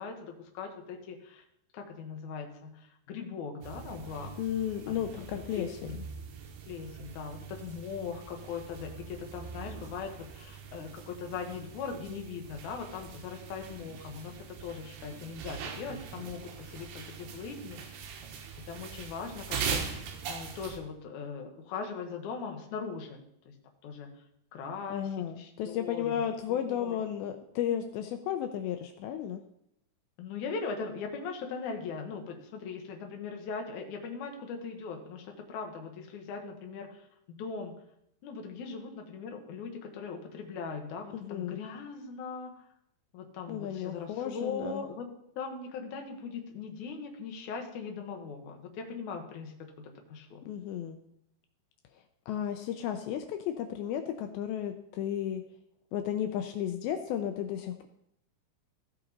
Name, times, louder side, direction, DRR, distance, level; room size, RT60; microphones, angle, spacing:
voice 1, 0.0-1.4 1.7-4.4 4.9-5.3 5.6-6.0 6.7-18.2 18.6-23.2 23.5-23.6 23.8-24.1 24.5-26.2 26.5-27.0 30.2-37.7 38.2-42.5 43.1-45.1 45.4-50.4, left 5 dB, 65° left, 3 dB, 2.0 m, -40 dB
sound 1, 3.6-20.8, right 6 dB, 70° right, 3.0 m, -42 dB
voice 2, 4.4-6.0 24.9-29.4 41.1-41.6 43.5-44.9 50.4-51.0 52.3-55.4 55.9-57.9, left 10 dB, 90° left, 7 dB, 2.1 m, -33 dB
15.0 x 5.7 x 4.0 m, 0.75 s
omnidirectional pair, 5.0 m